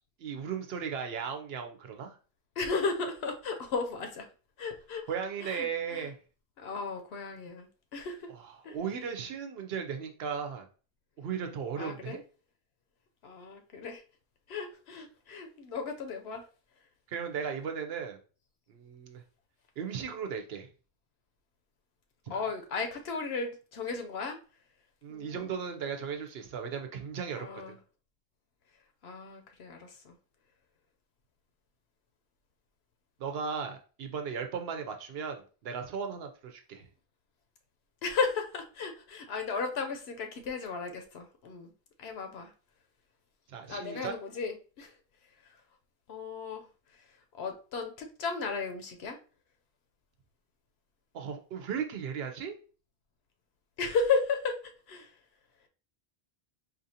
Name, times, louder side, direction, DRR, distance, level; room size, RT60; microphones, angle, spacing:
voice 1, 0.2-2.2 5.1-6.2 8.7-10.6 11.2-12.2 17.1-18.2 18.7-19.2 19.8-20.7 22.3-22.4 25.0-27.8 33.2-36.9 43.5-44.1 51.1-52.5, right 6 dB, 75° right, 5 dB, 0.9 m, -36 dB
voice 2, 2.6-4.3 4.6-5.0 5.4-6.1 6.6-8.3 8.6-8.8 11.8-12.2 13.2-14.0 14.5-16.4 22.3-24.4 25.1-25.5 27.3-27.8 29.0-30.2 38.0-41.7 42.0-42.5 43.7-44.9 46.1-46.7 47.4-49.2 53.8-54.6 54.9-55.1, left 4 dB, 80° left, 5 dB, 0.9 m, -34 dB
4.2 x 2.6 x 2.7 m, 0.37 s
omnidirectional pair, 1.1 m